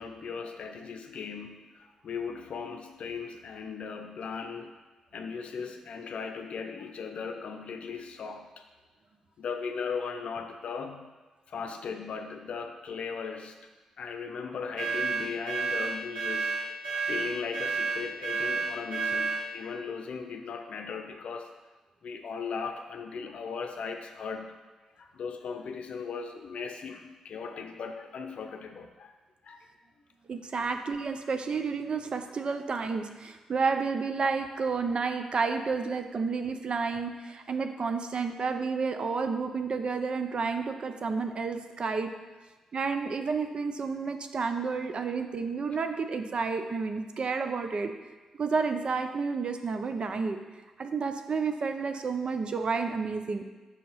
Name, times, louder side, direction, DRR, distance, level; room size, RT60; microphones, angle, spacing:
voice 1, 0.0-4.8 5.1-8.6 9.4-11.1 11.5-13.6 14.0-16.6 16.9-21.5 22.0-24.6 25.0-29.1 29.4-29.7 30.5-30.7 32.5-32.6, left 5 dB, 70° left, 6 dB, 0.6 m, -38 dB
sound 1, 14.8-19.4, right 4 dB, 75° right, 1.7 m, -30 dB
voice 2, 30.3-42.1 42.7-47.9 48.4-50.4 50.8-53.4, right 4 dB, 50° right, 7 dB, 0.5 m, -30 dB
6.3 x 2.9 x 5.5 m, 1.2 s
supercardioid pair, 55°, 2 cm